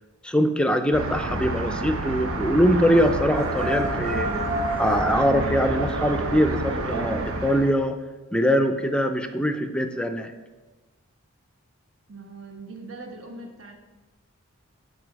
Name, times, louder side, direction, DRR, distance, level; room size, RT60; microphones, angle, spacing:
voice 1, 0.2-4.5 4.8-8.0 8.3-10.3, equal, 5° left, 7 dB, 0.4 m, -23 dB
sound 1, 0.9-7.7, right 2 dB, 90° right, 0.8 m, -29 dB
sound 2, 2.9-5.1, right 1 dB, 30° right, 2.3 m, -30 dB
voice 2, 12.1-13.7, right 2 dB, 65° right, 2 dB, 1.2 m, -41 dB
10.0 x 4.0 x 5.1 m, 1.2 s
head